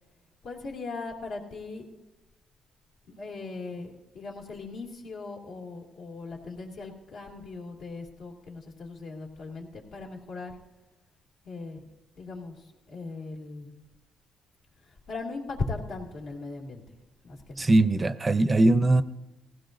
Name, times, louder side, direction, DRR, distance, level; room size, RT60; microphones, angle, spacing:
voice 1, 0.4-1.8 3.1-10.5 11.4-11.8 12.2-13.8 14.8-16.8 17.2-17.7, left 3 dB, 75° left, -1 dB, 2.4 m, -38 dB
voice 2, 17.6-19.0, right 2 dB, 25° right, 13 dB, 0.5 m, -21 dB
18.0 x 16.0 x 2.6 m, 1.1 s
cardioid pair, 90°, 0 cm